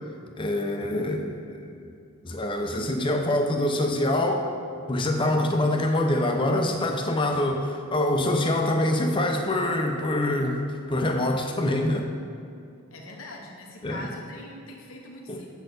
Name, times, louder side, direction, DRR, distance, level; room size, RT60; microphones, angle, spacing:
voice 1, 0.4-1.7 2.2-4.5 4.9-12.1 13.8-14.1 15.3-15.4, left 1 dB, 25° left, 3 dB, 0.6 m, -25 dB
voice 2, 12.9-15.5, left 1 dB, 80° left, 0 dB, 0.9 m, -42 dB
8.0 x 4.3 x 6.6 m, 2.4 s
head